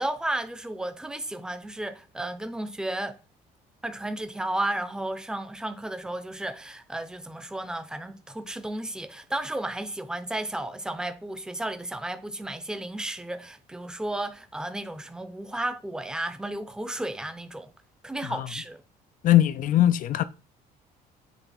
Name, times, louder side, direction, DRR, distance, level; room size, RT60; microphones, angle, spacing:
voice 1, 0.0-3.2 3.8-17.7 18.0-18.8, right 1 dB, 5° right, 0.7 m, -33 dB
voice 2, 19.2-20.2, left 13 dB, 55° left, 0.5 m, -20 dB
8.1 x 3.3 x 4.2 m
cardioid pair, 110°, 17 cm